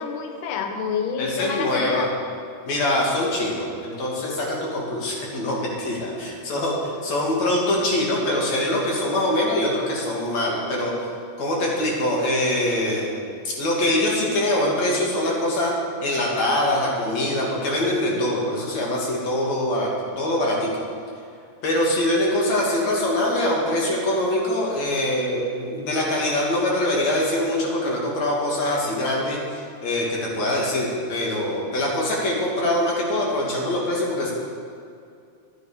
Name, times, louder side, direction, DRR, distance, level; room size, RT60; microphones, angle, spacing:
voice 1, 0.0-2.1, left 6 dB, 80° left, 5 dB, 2.5 m, -28 dB
voice 2, 1.2-2.1 2.7-10.9 11.4-13.1 13.4-15.7 16.0-20.7 21.6-34.3, left 1 dB, 60° left, -3 dB, 3.4 m, -23 dB
13.0 x 10.0 x 5.1 m, 2.4 s
omnidirectional pair, 3.6 m